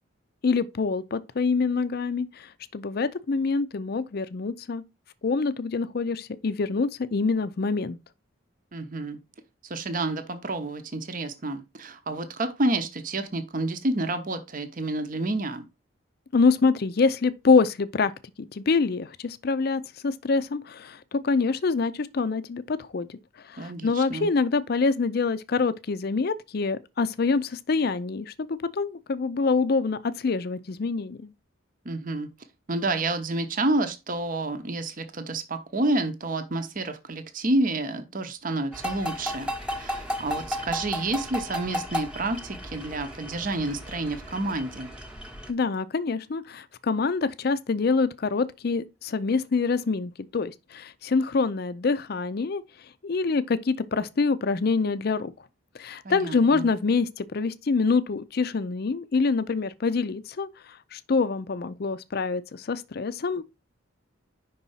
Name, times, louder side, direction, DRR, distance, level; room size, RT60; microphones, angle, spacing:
voice 1, 0.4-2.5 2.7-4.8 5.2-8.0 16.3-18.1 18.4-23.2 23.5-31.3 45.5-52.6 53.0-55.3 55.8-60.5 60.9-63.4, left 4 dB, 50° left, 0.5 m, -25 dB
voice 2, 8.7-9.2 9.6-15.6 23.6-24.3 31.8-32.3 32.7-39.5 39.7-44.9 56.0-56.7, right 2 dB, 40° right, 0.8 m, -29 dB
sound 1, 38.7-45.5, equal, 5° right, 0.9 m, -34 dB
5.4 x 4.0 x 5.5 m
head